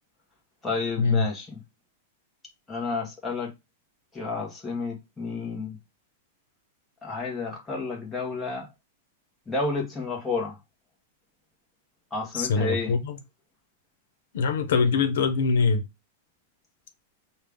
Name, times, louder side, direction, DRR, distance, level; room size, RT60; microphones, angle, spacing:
voice 1, 0.6-1.6 2.7-3.5 4.1-5.8 7.0-8.7 9.5-10.6 12.1-12.9, left 3 dB, 5° left, 1.1 m, -31 dB
voice 2, 12.3-13.2 14.3-15.8, left 4 dB, 75° left, 0.8 m, -23 dB
5.4 x 2.3 x 3.4 m
supercardioid pair, 175°, 0 cm